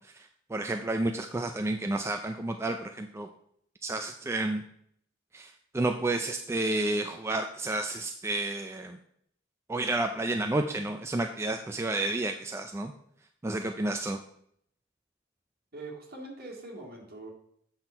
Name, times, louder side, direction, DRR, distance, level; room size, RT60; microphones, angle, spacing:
voice 1, 0.0-3.3 3.8-4.6 5.3-9.0 9.7-12.9 13.4-14.2, right 2 dB, 15° right, 5 dB, 0.3 m, -31 dB
voice 2, 15.7-17.3, right 2 dB, 50° right, -1 dB, 2.0 m, -43 dB
7.7 x 6.0 x 4.4 m, 0.69 s
head